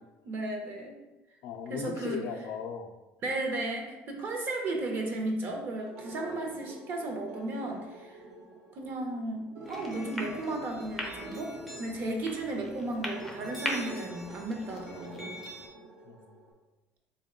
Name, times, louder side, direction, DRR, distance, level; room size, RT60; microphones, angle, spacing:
voice 1, 0.2-1.0 1.7-2.2 3.2-8.2 8.7-15.3, right 2 dB, 40° right, 2 dB, 0.6 m, -34 dB
voice 2, 1.4-2.9 6.3-6.4 16.0-16.4, left 7 dB, 60° left, 5 dB, 0.4 m, -38 dB
sound 1, 5.8-16.5, right 2 dB, 80° right, 1.0 m, -47 dB
sound 2, 9.6-15.7, equal, ahead, 0.5 m, -41 dB
3.6 x 2.2 x 3.6 m, 1.0 s
cardioid pair, 145°, 5 cm